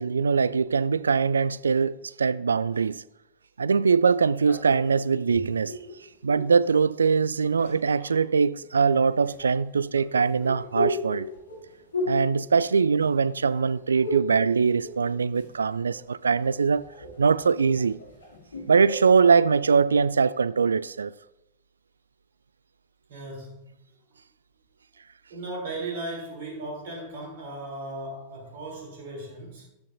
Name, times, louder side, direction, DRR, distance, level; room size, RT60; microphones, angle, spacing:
voice 1, 0.0-3.0 3.6-5.7 6.2-11.3 12.1-16.9 17.2-18.0 18.7-21.1, right 5 dB, 75° right, 0.3 m, -22 dB
sound 1, 4.4-6.6 7.3-8.2 9.2-13.3 13.5-14.4 14.7-15.6 15.9-19.1, left 1 dB, 75° left, 2.7 m, -35 dB
voice 2, 23.1-23.8 25.3-29.7, right 2 dB, 55° right, 3.6 m, -37 dB
13.0 x 10.0 x 2.7 m
figure-of-eight pair, 90°, 0 cm